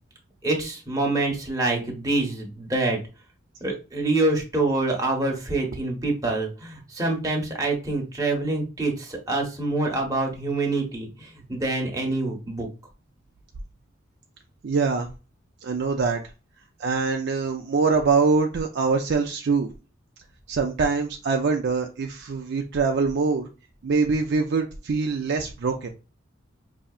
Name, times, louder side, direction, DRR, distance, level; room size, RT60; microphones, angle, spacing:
voice 1, 0.4-3.0 3.6-12.7, right 2 dB, 20° right, 0 dB, 1.0 m, -26 dB
voice 2, 14.6-15.1 15.6-16.2 16.8-19.7 20.5-23.5 23.8-25.9, right 4 dB, 55° right, 3 dB, 0.4 m, -24 dB
5.3 x 2.8 x 2.3 m, 0.32 s
head